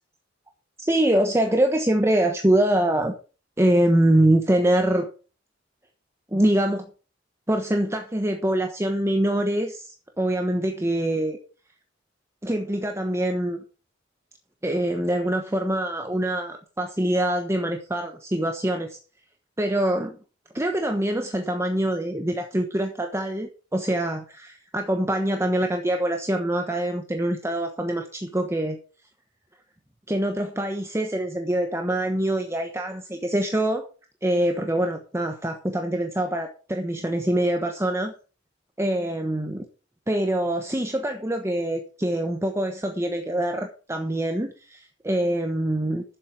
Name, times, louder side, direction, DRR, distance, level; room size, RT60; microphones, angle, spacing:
voice 1, 0.8-3.1 3.6-5.1 6.3-6.9 7.5-11.4 12.4-13.6 14.6-19.0 19.6-20.2 20.5-28.8 30.1-33.9 34.2-38.1 38.8-39.6 40.1-46.0, right 1 dB, 15° right, 4 dB, 1.1 m, -24 dB
11.5 x 7.6 x 6.1 m, 0.36 s
head